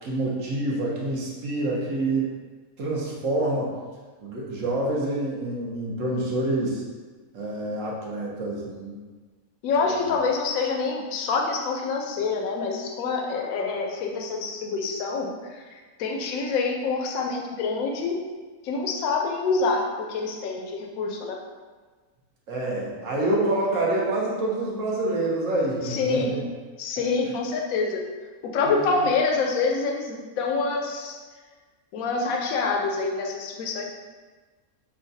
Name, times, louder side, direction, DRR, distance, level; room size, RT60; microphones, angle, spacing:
voice 1, 0.0-2.3 2.8-3.7 4.2-6.8 7.3-9.0 9.8-10.2 22.5-26.4 28.7-28.8, right 2 dB, 60° right, -4 dB, 1.2 m, -27 dB
voice 2, 9.6-18.2 18.6-21.4 25.8-26.3 26.8-28.0 28.4-31.2 31.9-33.8, left 4 dB, 75° left, 1 dB, 1.0 m, -26 dB
5.7 x 2.3 x 2.6 m, 1.4 s
omnidirectional pair, 1.6 m